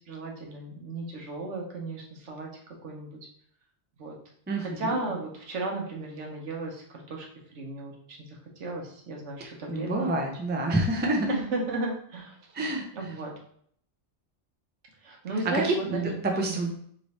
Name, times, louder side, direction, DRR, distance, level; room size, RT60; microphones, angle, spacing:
voice 1, 0.1-2.5 2.8-3.1 4.0-4.2 4.6-7.3 7.5-10.3 11.3-12.4 12.9-13.3 15.0-16.6, right 2 dB, 85° right, 0 dB, 1.2 m, -34 dB
voice 2, 4.5-5.0 9.4-11.3 12.5-12.9 15.5-16.7, right 1 dB, 15° right, 2 dB, 0.4 m, -28 dB
3.3 x 3.1 x 4.1 m, 0.64 s
omnidirectional pair, 1.2 m